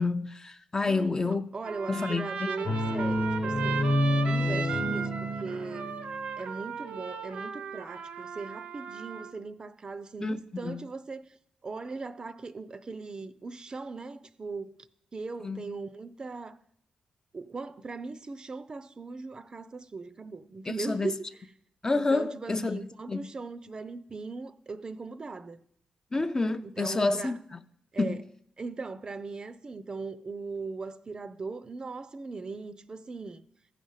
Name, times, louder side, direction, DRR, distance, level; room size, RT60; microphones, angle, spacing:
voice 1, 0.0-1.5 1.9-2.5 10.2-10.8 15.4-15.6 20.9-21.1 21.8-22.8 23.1-23.2 26.1-27.4 28.0-28.2, left 3 dB, 30° left, 0.5 m, -28 dB
voice 2, 0.8-3.9 4.2-5.9 6.4-11.3 11.6-14.8 15.1-16.6 17.3-21.5 21.9-25.6 26.6-27.4 27.9-28.2 28.6-33.4, right 4 dB, 35° right, 0.5 m, -39 dB
Trumpet, 1.6-9.3, right 6 dB, 85° right, 0.8 m, -37 dB
sound 1, 2.6-6.3, left 1 dB, 50° left, 1.0 m, -28 dB
14.0 x 5.0 x 5.6 m
cardioid pair, 85°, 2 cm